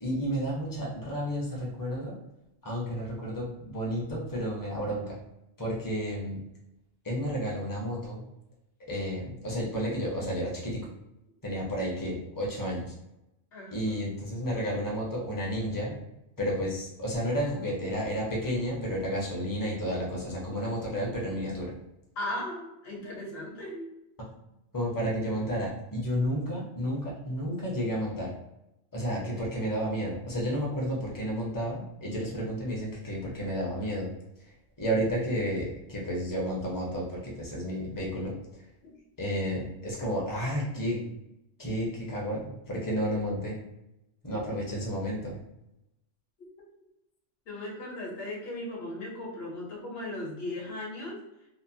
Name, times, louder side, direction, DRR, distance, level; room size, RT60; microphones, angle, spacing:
voice 1, 0.0-2.2 2.6-5.2 5.6-6.4 7.0-8.2 8.9-10.8 11.4-12.9 13.7-16.0 16.4-21.7 24.7-28.3 28.9-34.1 34.8-38.4 39.2-41.0 41.6-43.6 44.2-45.4, equal, 25° left, -3 dB, 0.5 m, -31 dB
voice 2, 13.5-14.0 22.2-23.9 38.8-38.9 47.5-51.2, left 1 dB, 60° left, -3 dB, 1.0 m, -37 dB
2.8 x 2.0 x 2.6 m, 0.87 s
omnidirectional pair, 1.2 m